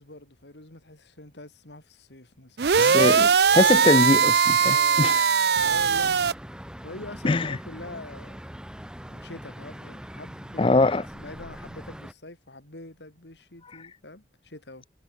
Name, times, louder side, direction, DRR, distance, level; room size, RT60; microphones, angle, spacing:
voice 1, 0.0-2.6 4.6-5.2 5.6-6.2 6.8-8.5 9.1-10.8 11.1-14.8, left 2 dB, 85° left, 3.5 m, -43 dB
sound 1, 2.6-6.3, right 6 dB, 70° right, 0.6 m, -20 dB
voice 2, 2.8-5.2 7.2-7.6 10.6-11.0, left 2 dB, 30° left, 0.5 m, -22 dB
sound 2, 5.5-12.1, equal, 5° right, 2.4 m, -42 dB
head